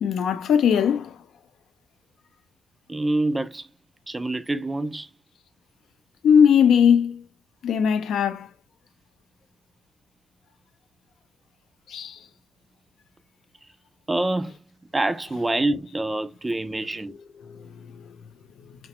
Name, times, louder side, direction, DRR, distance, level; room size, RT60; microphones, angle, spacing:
voice 1, 0.0-1.1 6.2-7.2 7.6-8.5 11.9-12.2 17.4-17.6, left 7 dB, 70° left, 0.4 m, -19 dB
voice 2, 2.9-3.7 4.1-5.1 14.1-14.5 14.9-17.1, right 2 dB, 15° right, 0.3 m, -26 dB
2.9 x 2.1 x 2.8 m
cardioid pair, 105°, 0 cm